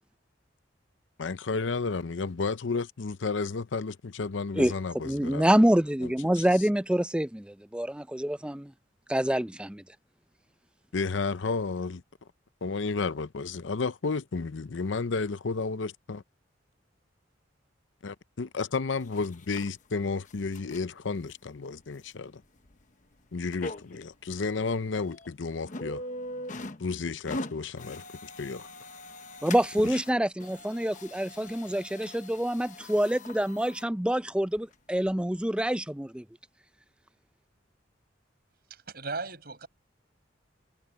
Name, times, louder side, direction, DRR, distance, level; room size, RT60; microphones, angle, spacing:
voice 1, 1.2-5.5 6.0-6.1 6.4-6.5 10.9-12.0 12.6-16.2 18.0-22.4 23.3-26.0 26.8-28.7 29.8-30.0, left 4 dB, 85° left, 0.7 m, -32 dB
voice 2, 5.0-8.7 9.1-9.8 29.4-36.2, right 1 dB, 5° right, 0.5 m, -26 dB
sound 1, 19.0-19.7 20.2-20.8 21.3-21.4 22.1-22.2 22.7-22.8 23.5-24.0 24.5-24.6 24.9-25.3 25.7-26.8 27.1-30.1 30.4-33.9 34.6-34.7 35.1-35.2, left 1 dB, 45° left, 1.0 m, -41 dB
voice 3, 38.7-39.7, right 3 dB, 55° right, 5.8 m, -37 dB
head